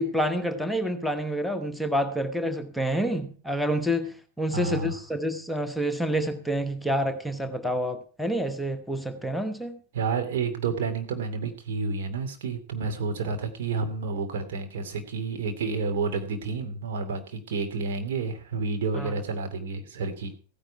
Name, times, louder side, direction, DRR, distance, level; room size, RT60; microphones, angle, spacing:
voice 1, 0.0-9.8 18.9-19.1, equal, ahead, 6 dB, 1.2 m, -28 dB
voice 2, 4.5-5.0 9.9-20.4, right 4 dB, 55° right, 5 dB, 2.7 m, -30 dB
15.5 x 10.0 x 4.7 m, 0.40 s
figure-of-eight pair, 90°, 0 cm